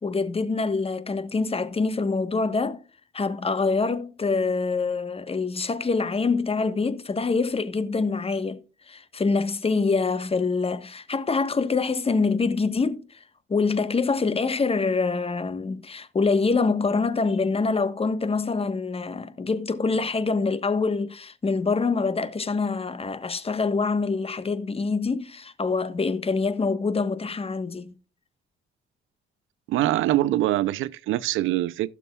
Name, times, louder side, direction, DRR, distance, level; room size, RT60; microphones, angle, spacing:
voice 1, 0.0-2.8 3.1-8.6 8.9-13.2 13.5-27.9, left 4 dB, 30° left, 1.2 m, -25 dB
voice 2, 29.7-31.9, right 14 dB, 90° right, 0.6 m, -24 dB
16.5 x 7.0 x 2.3 m
cardioid pair, 90°, 20 cm